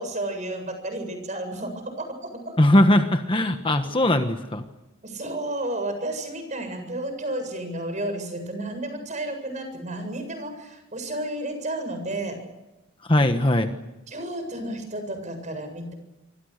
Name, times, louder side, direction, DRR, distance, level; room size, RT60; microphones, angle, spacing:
voice 1, 0.0-2.5 5.0-12.4 14.1-15.9, right 1 dB, 35° right, 7 dB, 7.8 m, -32 dB
voice 2, 2.6-4.6 13.1-13.7, left 1 dB, 25° left, 7 dB, 1.3 m, -20 dB
27.5 x 25.0 x 6.7 m, 0.96 s
head